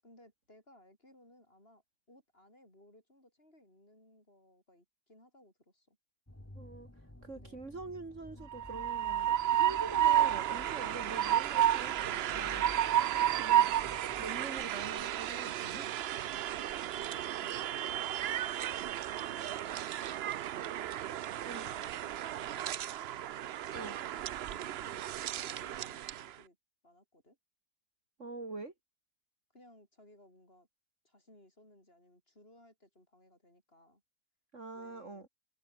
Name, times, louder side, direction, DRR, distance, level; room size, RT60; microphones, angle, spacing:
voice 1, 0.0-6.0 7.3-7.6 13.0-13.5 16.2-18.4 19.1-20.7 21.5-23.1 23.9-24.1 24.5-26.6 26.8-27.4 29.5-30.7 31.0-34.0 34.7-35.2, left 1 dB, 35° left, 8.0 m, -61 dB
sound 1, 6.3-14.4, left 1 dB, 10° left, 2.3 m, -52 dB
voice 2, 6.5-6.9 7.2-12.8 13.4-13.8 14.2-16.1 21.4-21.7 23.7-24.0 28.2-28.7 34.5-35.3, right 3 dB, 50° right, 3.2 m, -45 dB
Train, 8.5-26.3, right 12 dB, 75° right, 0.5 m, -32 dB
omnidirectional pair, 1.7 m